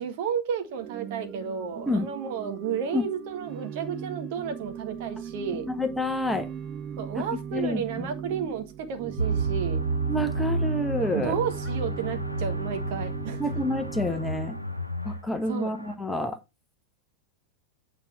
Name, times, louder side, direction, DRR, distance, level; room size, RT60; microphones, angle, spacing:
voice 1, 0.0-5.7 7.0-9.8 11.1-13.4 15.5-15.7, right 7 dB, 50° right, 1.5 m, -32 dB
Organ / Church bell, 0.6-14.8, right 8 dB, 30° right, 0.6 m, -38 dB
voice 2, 5.7-6.5 7.2-8.1 10.1-11.3 13.4-14.6 15.0-16.4, left 1 dB, 5° left, 1.1 m, -28 dB
sound 1, 9.2-16.0, right 2 dB, 90° right, 0.8 m, -31 dB
8.9 x 4.1 x 4.6 m
figure-of-eight pair, 90°, 0 cm